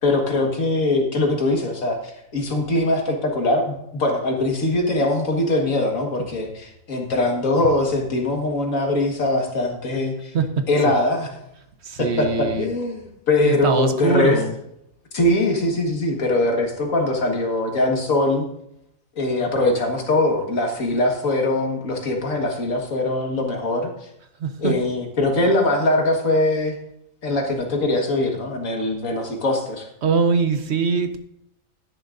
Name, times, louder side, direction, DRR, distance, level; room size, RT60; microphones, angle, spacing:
voice 1, 0.0-10.3 10.7-11.4 12.0-14.4 15.1-18.4 19.2-23.9 24.6-26.8 27.2-29.9, left 2 dB, 80° left, 2 dB, 2.0 m, -22 dB
voice 2, 11.8-12.7 13.4-14.5 24.4-24.7 30.0-31.2, right 5 dB, 60° right, 8 dB, 1.1 m, -22 dB
11.5 x 10.5 x 2.6 m, 0.77 s
omnidirectional pair, 1.4 m